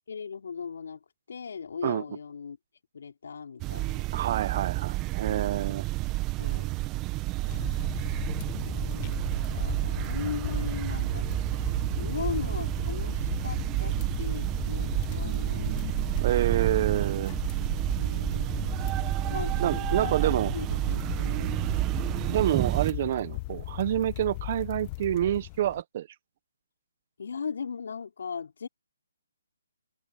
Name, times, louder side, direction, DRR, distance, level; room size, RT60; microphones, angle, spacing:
voice 1, 0.1-1.0 1.3-2.6 2.9-4.0 5.2-5.8 6.4-6.7 8.6-16.3 18.0-18.7 19.3-20.2 20.5-21.6 27.2-28.7, left 6 dB, 65° left, 4.7 m, -39 dB
sound 1, 3.6-22.9, right 20 dB, 20° right, 1.7 m, -30 dB
voice 2, 4.1-5.8 16.2-17.3 19.6-20.5 22.3-26.1, right 12 dB, 40° right, 1.2 m, -28 dB
sound 2, 7.5-25.8, left 23 dB, 25° left, 1.1 m, -37 dB
open air
hypercardioid pair, 155°, 0 cm